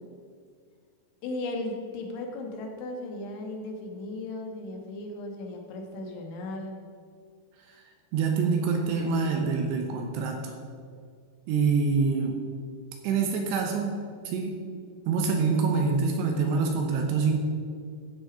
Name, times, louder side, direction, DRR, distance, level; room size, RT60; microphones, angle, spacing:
voice 1, 1.2-6.8, left 2 dB, 80° left, 2 dB, 3.7 m, -36 dB
voice 2, 8.1-10.5 11.5-12.4 13.0-14.0 14.3-14.6 15.1-17.4, right 5 dB, 75° right, 2 dB, 2.9 m, -26 dB
15.5 x 6.1 x 5.0 m, 2.1 s
omnidirectional pair, 5.4 m